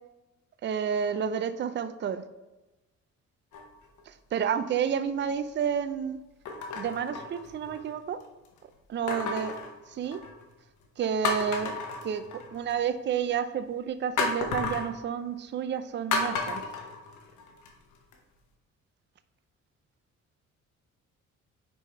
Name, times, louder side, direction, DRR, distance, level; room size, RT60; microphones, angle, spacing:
voice 1, 0.6-2.2 4.1-6.2 6.7-8.2 8.9-9.5 9.9-10.2 11.0-11.8 12.0-12.2 12.5-16.6, right 8 dB, 40° right, 12 dB, 0.5 m, -30 dB
sound 1, 3.5-4.0 4.7-4.8 6.5-7.9 9.1-10.4 10.8-10.9 11.2-12.7 14.2-14.9 16.1-17.7 18.1-18.2, left 4 dB, 80° left, 1.0 m, -32 dB
5.2 x 4.9 x 4.4 m, 1.1 s
cardioid pair, 90°, 30 cm